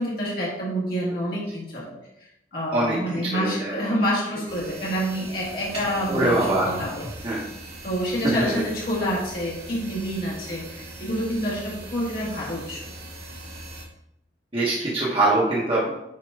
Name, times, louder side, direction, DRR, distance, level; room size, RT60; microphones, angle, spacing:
voice 1, 0.0-7.3 7.8-12.9, equal, 55° left, -6 dB, 1.8 m, -28 dB
voice 2, 2.7-3.8 6.1-6.7 7.2-7.4 8.2-8.5 14.5-15.9, right 2 dB, 30° right, -7 dB, 1.4 m, -23 dB
sound 1, 4.5-13.8, right 1 dB, 70° right, 2.3 m, -40 dB
8.2 x 3.0 x 4.8 m, 0.82 s
head